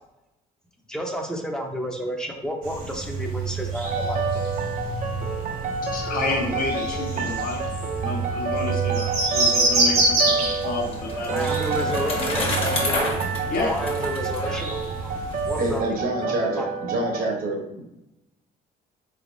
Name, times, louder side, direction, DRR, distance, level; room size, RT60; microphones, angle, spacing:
voice 1, 0.9-4.2 11.3-13.0 13.5-15.2 15.5-15.8 16.4-16.7, equal, 5° left, 2 dB, 0.6 m, -31 dB
sound 1, 2.6-15.8, right 3 dB, 85° right, 1.4 m, -28 dB
sound 2, 3.8-17.2, right 3 dB, 45° right, 0.5 m, -29 dB
voice 2, 5.9-7.6 8.0-11.5 13.5-13.7, left 2 dB, 55° left, 0 dB, 1.1 m, -30 dB
Bicycle, 10.3-15.4, left 1 dB, 35° left, 1.2 m, -30 dB
voice 3, 15.5-17.8, right 2 dB, 60° right, 1 dB, 0.9 m, -27 dB
4.0 x 3.4 x 2.6 m, 0.89 s
cardioid pair, 110°, 17 cm